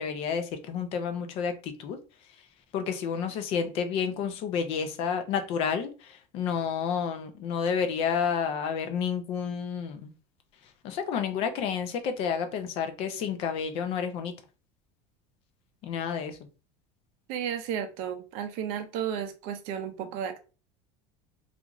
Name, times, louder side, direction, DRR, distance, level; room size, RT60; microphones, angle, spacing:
voice 1, 0.0-2.0 2.7-5.9 6.3-10.1 10.8-14.3 15.8-16.3, left 7 dB, 40° left, 8 dB, 0.4 m, -30 dB
voice 2, 17.3-20.4, right 8 dB, 50° right, 7 dB, 0.5 m, -33 dB
2.4 x 2.4 x 2.9 m, 0.34 s
cardioid pair, 170°, 15 cm